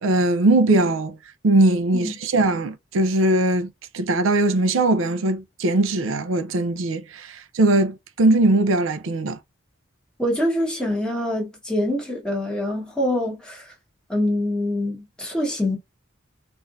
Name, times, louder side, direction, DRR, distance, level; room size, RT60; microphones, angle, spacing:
voice 1, 0.0-1.2 1.4-3.7 3.9-9.4, right 2 dB, 90° right, 0.5 m, -20 dB
voice 2, 10.2-13.7 14.1-15.8, left 1 dB, 5° left, 1.3 m, -25 dB
4.2 x 2.6 x 2.5 m
head